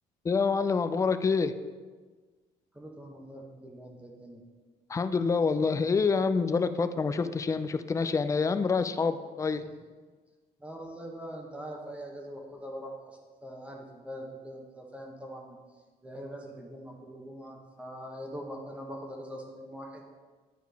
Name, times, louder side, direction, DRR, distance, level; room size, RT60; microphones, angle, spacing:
voice 1, 0.2-1.5 4.9-9.6, left 5 dB, 20° left, 11 dB, 0.3 m, -27 dB
voice 2, 2.7-4.4 10.6-15.6 16.0-20.0, equal, 5° right, 0 dB, 1.0 m, -42 dB
9.1 x 4.7 x 3.4 m, 1.4 s
cardioid pair, 110°, 17 cm